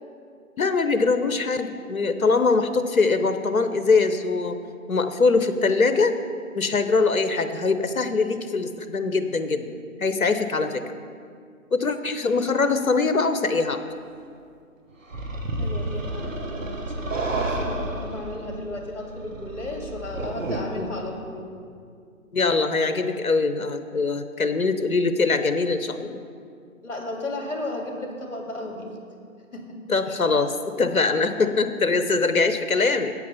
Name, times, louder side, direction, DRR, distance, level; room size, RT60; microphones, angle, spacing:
voice 1, 0.6-4.6 4.9-6.1 6.6-9.7 10.0-10.8 11.7-13.8 20.8-20.9 22.3-26.2 29.9-33.1, left 4 dB, 75° left, 9 dB, 0.9 m, -22 dB
sound 1, 15.1-20.6, right 2 dB, 65° right, 1.3 m, -30 dB
voice 2, 15.6-21.5 26.8-28.9 29.5-29.8 30.1-30.2, left 2 dB, 55° left, 1 dB, 2.1 m, -34 dB
8.4 x 8.3 x 5.6 m, 2.3 s
figure-of-eight pair, 145°, 43 cm